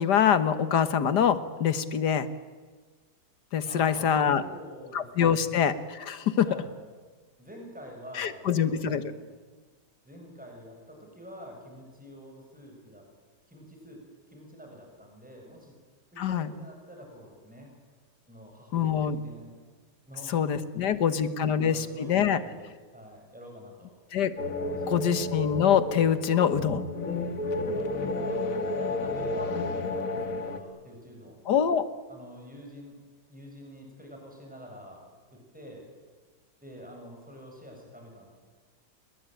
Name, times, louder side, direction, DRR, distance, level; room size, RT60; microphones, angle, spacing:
voice 1, 0.0-2.3 3.5-4.4 4.9-6.6 8.2-9.0 16.2-16.5 18.7-19.2 20.3-22.4 24.1-24.3 24.9-26.8 31.5-31.9, left 8 dB, 75° left, 13 dB, 1.9 m, -25 dB
voice 2, 3.6-5.6 6.5-6.7 7.4-9.3 10.1-13.0 13.5-14.0 14.3-15.7 16.1-17.7 18.3-19.5 20.1-20.4 20.8-23.9 24.7-25.2 28.2-31.4 32.1-33.0 33.3-35.0 35.3-35.9 36.6-38.3, equal, 5° right, 1 dB, 7.0 m, -47 dB
sound 1, 24.4-30.6, left 2 dB, 50° left, 2.2 m, -31 dB
29.5 x 21.0 x 9.2 m, 1.4 s
omnidirectional pair, 1.8 m